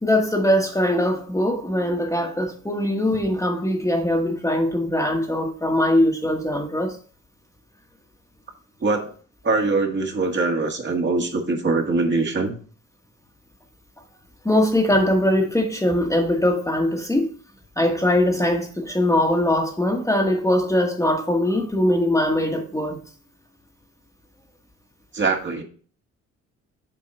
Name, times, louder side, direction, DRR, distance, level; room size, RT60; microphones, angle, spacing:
voice 1, 0.0-7.0 14.4-17.3 17.8-23.0, left 1 dB, 10° left, 1.3 m, -21 dB
voice 2, 8.8-9.1 9.4-12.5 25.1-25.6, right 3 dB, 40° right, 1.7 m, -22 dB
7.5 x 3.7 x 5.3 m
cardioid pair, 90°, 30 cm